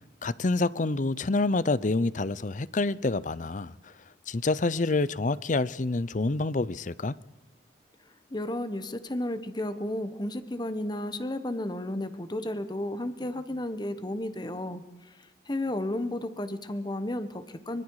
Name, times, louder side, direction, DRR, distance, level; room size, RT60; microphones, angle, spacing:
voice 1, 0.2-3.9 4.3-7.2, left 3 dB, 45° left, 0.6 m, -27 dB
voice 2, 8.3-14.8 15.5-17.8, left 1 dB, 25° left, 1.2 m, -33 dB
24.5 x 23.0 x 4.8 m
head